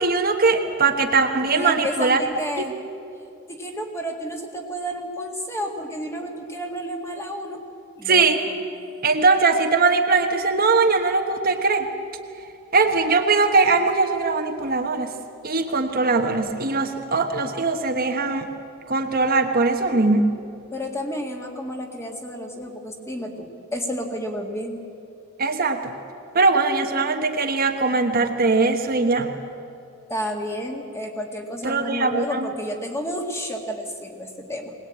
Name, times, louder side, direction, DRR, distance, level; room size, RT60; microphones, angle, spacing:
voice 1, 0.0-2.2 8.0-8.4 9.0-11.9 12.7-15.1 15.4-18.5 18.9-20.3 25.4-25.9 26.3-29.3 31.6-32.5, right 3 dB, 40° right, 4 dB, 1.2 m, -20 dB
voice 2, 1.5-2.8 3.5-7.6 8.0-8.6 20.7-24.8 30.1-34.7, equal, 10° left, 2 dB, 2.0 m, -31 dB
21.0 x 19.5 x 8.8 m, 2.7 s
head